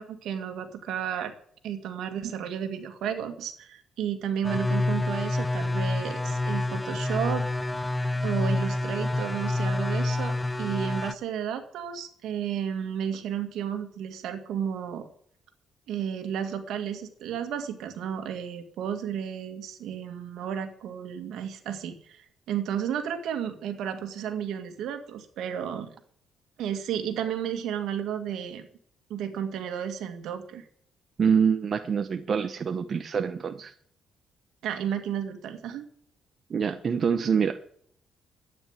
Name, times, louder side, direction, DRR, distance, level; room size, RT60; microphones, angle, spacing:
voice 1, 0.0-1.3 1.6-7.5 8.2-15.1 15.9-25.9 26.6-28.6 29.1-30.7 34.6-35.9, right 8 dB, 80° right, 7 dB, 2.2 m, -32 dB
sound 1, 4.4-11.1, left 2 dB, 10° left, 0.7 m, -28 dB
voice 2, 31.2-33.7 36.5-37.6, right 6 dB, 50° right, 9 dB, 0.9 m, -25 dB
12.5 x 9.7 x 8.3 m, 0.63 s
cardioid pair, 90°, 0 cm